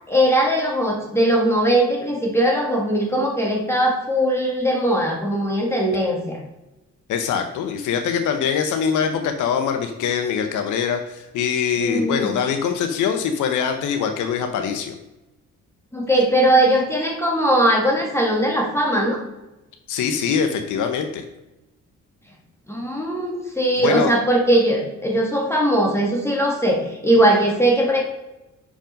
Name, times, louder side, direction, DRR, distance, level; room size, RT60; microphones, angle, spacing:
voice 1, 0.1-6.4 11.8-12.3 15.9-19.2 22.7-28.0, right 1 dB, 10° left, -1 dB, 1.6 m, -20 dB
voice 2, 7.1-14.9 19.9-21.2 23.8-24.1, left 7 dB, 80° left, 6 dB, 0.8 m, -23 dB
5.1 x 5.1 x 5.2 m, 0.96 s
cardioid pair, 90°, 30 cm